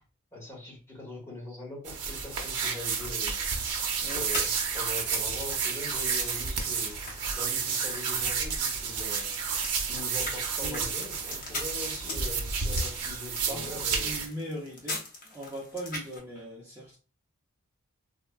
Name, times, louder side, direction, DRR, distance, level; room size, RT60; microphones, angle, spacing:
voice 1, 0.3-3.4 4.1-6.9 7.3-9.3 9.8-14.1, left 2 dB, 10° left, 1.0 m, -42 dB
sound 1, 1.8-14.3, right 5 dB, 85° right, 0.6 m, -31 dB
sound 2, 2.3-16.2, left 2 dB, 40° left, 0.7 m, -43 dB
voice 2, 10.6-10.9 13.5-17.0, equal, 10° right, 0.5 m, -40 dB
3.3 x 2.1 x 2.3 m
head